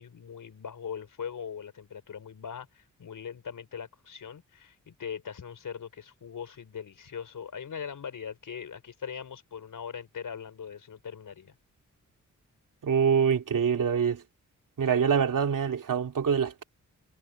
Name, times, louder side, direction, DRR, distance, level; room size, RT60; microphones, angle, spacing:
voice 1, 0.0-11.5, left 7 dB, 85° left, 4.9 m, -40 dB
voice 2, 12.8-14.2 14.8-16.6, right 7 dB, 80° right, 2.9 m, -25 dB
wide cardioid pair, 125°, 32 cm